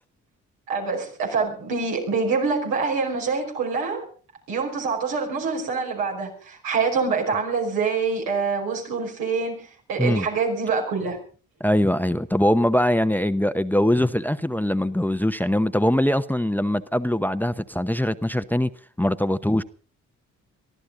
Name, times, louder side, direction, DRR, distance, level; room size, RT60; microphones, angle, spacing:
voice 1, 0.7-4.0 4.5-11.2, right 4 dB, 85° right, 5.3 m, -25 dB
voice 2, 11.6-18.7 19.0-19.6, left 1 dB, 5° left, 0.9 m, -22 dB
23.0 x 14.0 x 3.8 m
supercardioid pair, 60°, 33 cm